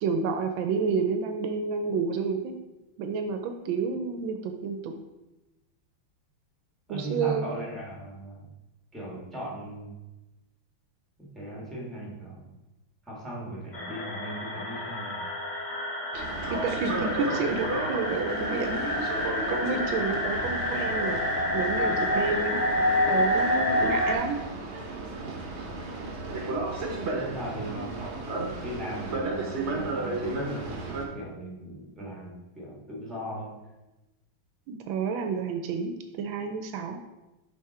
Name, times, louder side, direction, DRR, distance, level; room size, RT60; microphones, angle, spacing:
voice 1, 0.0-2.5 3.0-4.9 6.9-7.6 16.1-16.2 16.5-21.2 21.5-22.6 23.1-24.4 27.7-27.9 34.7-37.0, right 5 dB, 80° right, 6 dB, 1.3 m, -30 dB
voice 2, 6.9-8.4 8.9-10.0 11.3-12.6 13.1-15.3 27.1-33.6, right 1 dB, ahead, -3 dB, 1.4 m, -38 dB
sound 1, 13.7-24.1, left 1 dB, 35° left, 0.8 m, -28 dB
Boat Water vehicle, 16.1-31.0, right 2 dB, 45° right, 1.0 m, -34 dB
5.7 x 4.8 x 4.2 m, 1.0 s
omnidirectional pair, 2.2 m